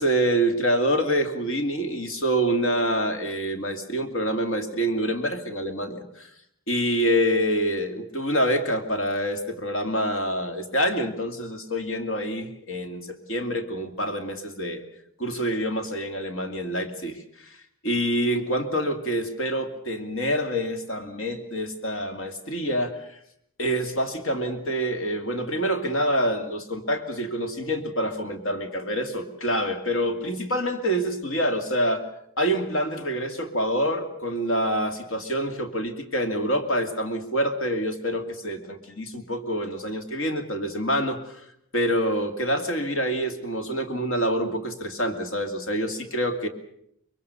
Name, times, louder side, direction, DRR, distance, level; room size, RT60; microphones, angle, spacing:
voice 1, 0.0-6.3 6.7-14.8 15.2-17.5 17.8-23.1 23.6-32.0 32.4-41.4 41.7-46.5, equal, 65° left, 6 dB, 2.6 m, -26 dB
24.5 x 22.5 x 6.9 m, 0.72 s
head